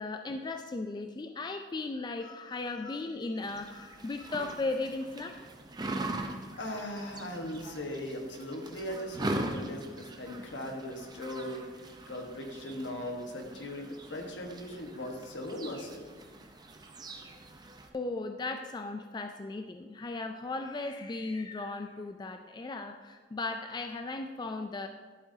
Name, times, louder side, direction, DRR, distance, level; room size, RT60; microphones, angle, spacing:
voice 1, 0.0-5.5 17.9-24.9, left 3 dB, 25° left, 6 dB, 0.3 m, -36 dB
sound 1, 3.4-17.9, right 2 dB, 20° right, 0.6 m, -41 dB
voice 2, 6.6-16.0, left 1 dB, 75° left, 2 dB, 1.3 m, -39 dB
12.0 x 7.4 x 2.7 m, 1.4 s
head